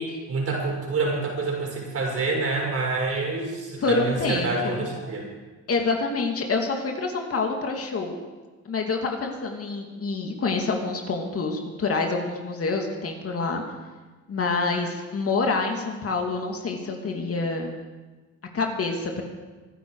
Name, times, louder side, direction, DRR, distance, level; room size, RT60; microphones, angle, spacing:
voice 1, 0.0-5.3, right 3 dB, 50° right, -2 dB, 6.4 m, -27 dB
voice 2, 3.8-4.9 5.7-8.2 8.7-13.6 14.3-17.8 18.5-19.2, left 3 dB, 50° left, 2 dB, 2.6 m, -27 dB
25.0 x 10.0 x 4.9 m, 1.3 s
cardioid pair, 90°, 30 cm